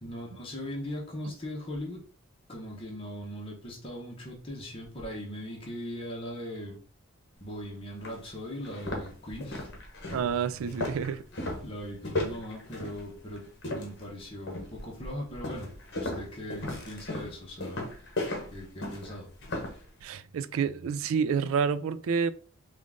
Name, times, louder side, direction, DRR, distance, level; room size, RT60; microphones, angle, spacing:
voice 1, 0.0-2.0 2.5-6.8 7.4-9.7 10.1-10.2 11.6-17.8 18.5-19.3, equal, 25° left, 0.9 m, -39 dB
sound 1, 7.5-7.6 8.0-8.2 8.6-14.1 14.5-14.9 15.4-19.8, left 2 dB, 50° left, 1.0 m, -36 dB
voice 2, 10.1-11.2 20.0-22.3, right 6 dB, 70° right, 0.3 m, -29 dB
3.7 x 2.5 x 3.5 m
head